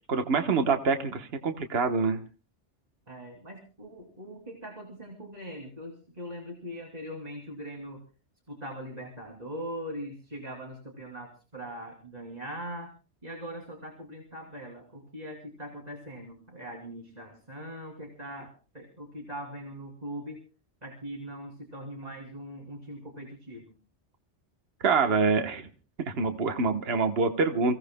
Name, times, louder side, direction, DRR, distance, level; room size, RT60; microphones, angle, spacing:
voice 1, 0.1-2.2 24.8-25.7 26.1-27.8, right 4 dB, 60° right, 6 dB, 1.4 m, -26 dB
voice 2, 3.1-8.0 8.5-12.9 13.2-20.4 20.8-23.7, equal, 35° right, 0 dB, 3.0 m, -41 dB
30.0 x 17.0 x 2.2 m, 0.35 s
omnidirectional pair, 1.2 m